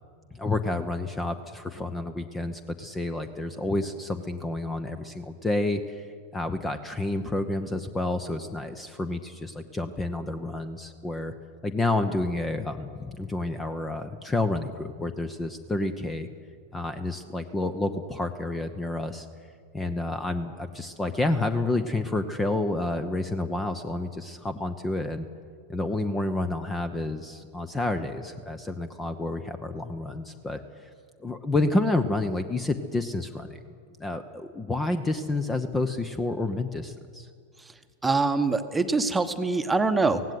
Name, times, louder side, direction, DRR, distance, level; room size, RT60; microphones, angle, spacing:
voice 1, 0.3-6.1 6.3-11.3 11.6-16.3 16.7-19.3 19.7-25.3 25.7-30.9 31.2-33.6 34.0-37.3, left 2 dB, 15° left, 11 dB, 0.9 m, -29 dB
voice 2, 37.6-40.3, right 3 dB, 10° right, 8 dB, 1.2 m, -25 dB
17.0 x 16.5 x 9.3 m, 2.1 s
figure-of-eight pair, 90°, 0 cm